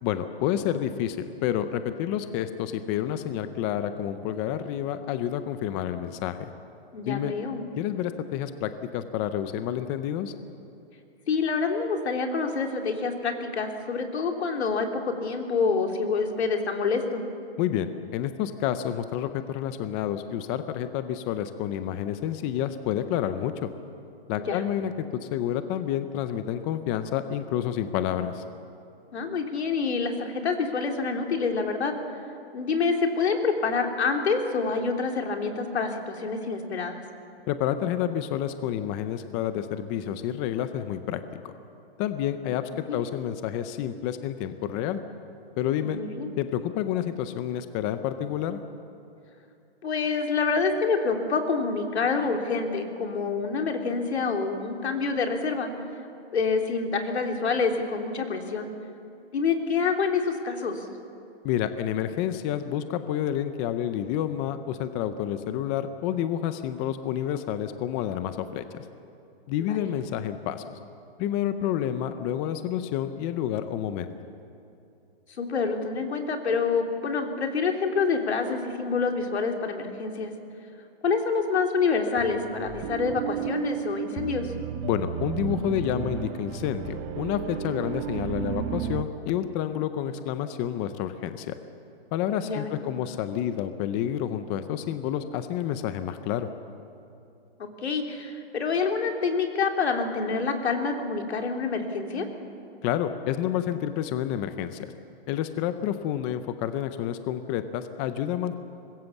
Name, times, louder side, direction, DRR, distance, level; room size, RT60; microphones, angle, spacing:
voice 1, 0.0-6.5 7.0-7.3 7.8-10.3 17.6-23.7 24.3-25.1 25.3-28.4 37.5-41.2 42.0-45.0 45.6-46.0 46.4-48.6 61.4-68.8 69.5-70.7 71.2-74.1 84.8-91.6 92.1-96.5 102.8-104.9 105.3-108.6, left 10 dB, 15° left, 10 dB, 0.5 m, -29 dB
voice 2, 6.9-7.6 11.3-17.2 24.3-24.6 29.1-31.9 32.5-37.0 42.9-43.0 45.8-46.3 49.8-55.7 56.3-58.7 59.3-60.9 69.6-69.9 75.4-80.3 81.0-84.5 92.4-92.8 97.6-102.3, left 4 dB, 80° left, 3 dB, 3.3 m, -27 dB
sound 1, 82.2-89.0, right 10 dB, 20° right, 0.7 m, -33 dB
24.0 x 21.0 x 7.2 m, 2.7 s
hypercardioid pair, 155°, 32 cm